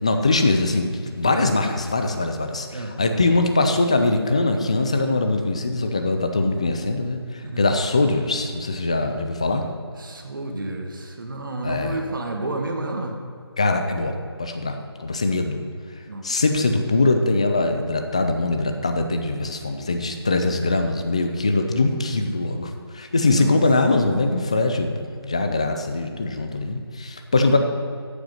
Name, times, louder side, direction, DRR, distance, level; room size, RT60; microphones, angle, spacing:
voice 1, 0.0-9.7 11.6-12.0 13.6-15.6 16.2-27.6, left 2 dB, 15° left, 5 dB, 0.4 m, -22 dB
voice 2, 1.0-1.5 2.7-2.9 7.5-7.7 10.0-13.2 16.1-16.3 23.3-23.5, right 2 dB, 50° right, 3 dB, 1.7 m, -30 dB
8.9 x 8.2 x 7.3 m, 2.4 s
figure-of-eight pair, 165°, 14 cm